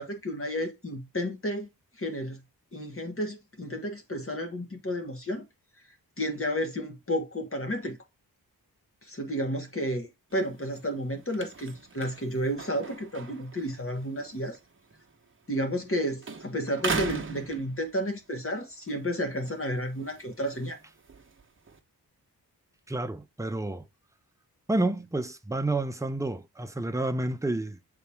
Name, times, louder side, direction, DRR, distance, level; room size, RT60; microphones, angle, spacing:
voice 1, 0.0-1.7 2.0-2.4 2.7-5.5 6.2-8.0 9.0-14.6 15.5-20.8, equal, 35° left, 1.5 m, -32 dB
sound 1, 10.3-15.9 16.2-18.2 18.7-21.8, right 4 dB, 30° right, 1.0 m, -40 dB
voice 2, 22.9-23.9 24.7-27.8, right 2 dB, 10° right, 0.6 m, -29 dB
7.1 x 4.1 x 3.4 m
wide cardioid pair, 90°, 38 cm